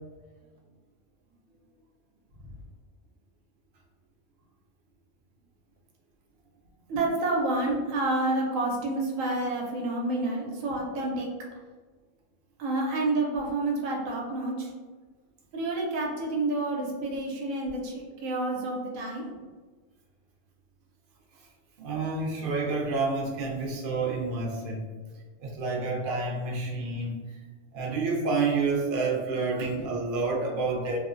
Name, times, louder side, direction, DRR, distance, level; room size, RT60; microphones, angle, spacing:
voice 1, 6.9-11.3 12.6-14.7 15.5-19.3, right 2 dB, 90° right, -1 dB, 1.0 m, -29 dB
voice 2, 21.8-24.8 25.4-27.4 27.7-31.0, right 3 dB, 55° right, -2 dB, 0.7 m, -29 dB
3.1 x 2.0 x 2.5 m, 1.4 s
omnidirectional pair, 1.4 m